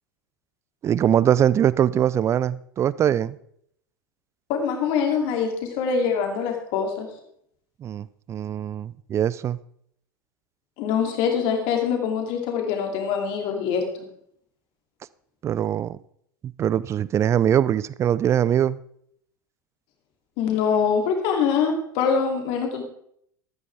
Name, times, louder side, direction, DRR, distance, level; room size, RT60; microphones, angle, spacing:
voice 1, 0.8-3.4 7.8-9.6 15.4-16.0 16.4-18.8, right 10 dB, 25° right, 0.4 m, -22 dB
voice 2, 4.5-7.1 10.8-13.8 20.4-22.8, left 6 dB, 50° left, 2.9 m, -24 dB
13.5 x 13.5 x 3.5 m
figure-of-eight pair, 85°, 11 cm